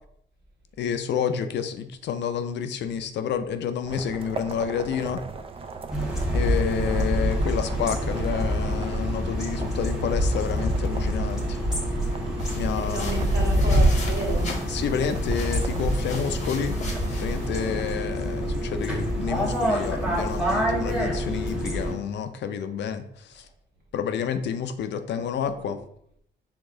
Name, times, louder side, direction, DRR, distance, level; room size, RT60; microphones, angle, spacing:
voice 1, 0.8-5.2 6.3-11.6 12.5-13.3 14.7-16.8 17.2-23.0 23.3-23.4 23.9-25.8, left 7 dB, 65° left, 9 dB, 0.4 m, -29 dB
sound 1, 3.8-18.0, right 4 dB, 30° right, 0.4 m, -39 dB
sound 2, 5.9-21.9, equal, 5° right, 1.2 m, -26 dB
sound 3, 12.4-17.5, left 3 dB, 35° left, 0.9 m, -37 dB
voice 2, 12.7-14.6 17.1-17.3 17.5-17.8 25.2-25.3, right 2 dB, 50° right, -2 dB, 1.5 m, -33 dB
4.7 x 3.6 x 2.6 m, 0.69 s
cardioid pair, 90°, 20 cm